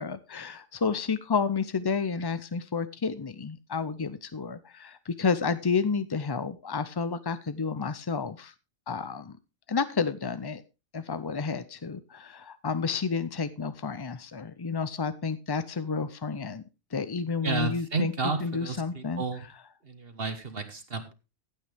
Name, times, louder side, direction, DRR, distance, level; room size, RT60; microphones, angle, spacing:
voice 1, 0.0-8.5 8.9-9.4 9.7-10.6 10.9-16.6 16.9-18.1 18.4-19.6, left 5 dB, 40° left, 13 dB, 0.3 m, -30 dB
voice 2, 17.4-19.4 19.9-21.1, right 4 dB, 55° right, 8 dB, 1.5 m, -32 dB
15.5 x 8.6 x 3.4 m, 0.28 s
omnidirectional pair, 1.2 m